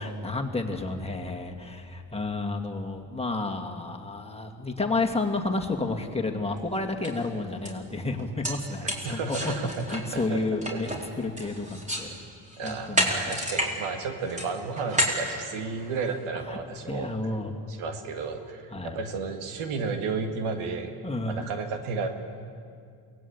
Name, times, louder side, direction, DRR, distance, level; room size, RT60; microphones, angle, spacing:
voice 1, 0.0-9.5 9.9-12.1 12.6-13.1 16.5-16.6 16.9-17.6 18.7-19.0 21.0-21.5, left 2 dB, 10° left, 2 dB, 2.4 m, -31 dB
sound 1, 6.6-6.7 7.0-7.2 7.7-7.8 8.2-12.1 12.5-13.7 14.0-16.1, equal, 15° right, 4.4 m, -30 dB
voice 2, 8.8-10.4 10.7-10.8 12.6-17.1 17.7-20.9 21.3-22.1, right 4 dB, 75° right, 6 dB, 2.1 m, -32 dB
22.5 x 18.5 x 8.7 m, 2.3 s
supercardioid pair, 70°, 50 cm